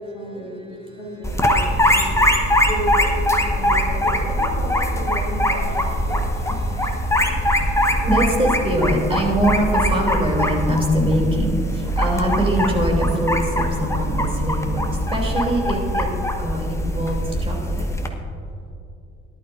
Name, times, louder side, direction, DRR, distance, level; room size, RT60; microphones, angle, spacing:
voice 1, 0.0-2.1 2.7-3.1 3.5-6.2, left 1 dB, 60° left, -1 dB, 2.2 m, -33 dB
sound 1, 1.2-18.1, equal, 10° left, 1.2 m, -21 dB
voice 2, 2.3-2.7 3.6-3.7 5.5-16.1 16.4-17.9, right 1 dB, 15° right, -1 dB, 3.1 m, -24 dB
18.5 x 11.5 x 2.7 m, 2.6 s
figure-of-eight pair, 50°, 34 cm